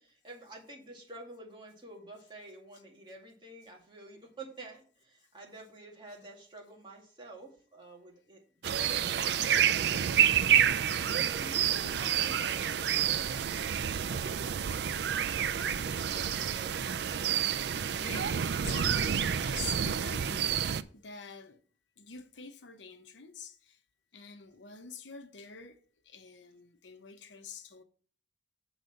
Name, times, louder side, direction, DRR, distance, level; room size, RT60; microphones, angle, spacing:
voice 1, 0.0-9.6 11.1-15.1 15.8-16.7, right 2 dB, 25° right, 2.1 m, -49 dB
sound 1, 8.6-20.8, right 9 dB, 65° right, 0.4 m, -29 dB
voice 2, 18.0-21.6 22.0-23.8 24.1-25.8 26.0-27.8, left 5 dB, 85° left, 0.9 m, -47 dB
7.9 x 4.0 x 6.5 m
head